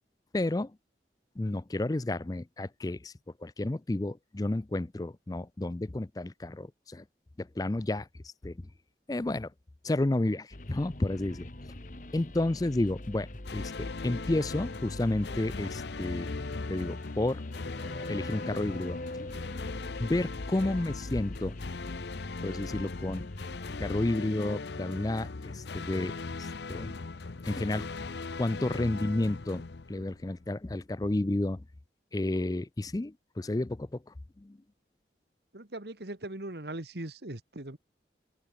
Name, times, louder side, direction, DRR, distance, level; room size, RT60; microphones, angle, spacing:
voice 1, 0.3-0.7 1.4-3.1 3.4-7.0 7.4-8.6 9.1-9.5 9.8-11.5 12.1-16.3 16.7-17.4 18.1-19.4 20.0-21.6 22.4-23.3 23.8-26.9 27.4-27.9 28.4-31.6 32.1-34.0 34.4-34.6, left 2 dB, 20° left, 0.4 m, -31 dB
sound 1, 10.5-24.0, left 1 dB, 45° left, 1.6 m, -44 dB
sound 2, 13.4-30.5, left 3 dB, 75° left, 0.8 m, -39 dB
voice 2, 35.5-37.8, right 1 dB, 70° right, 2.1 m, -40 dB
open air
head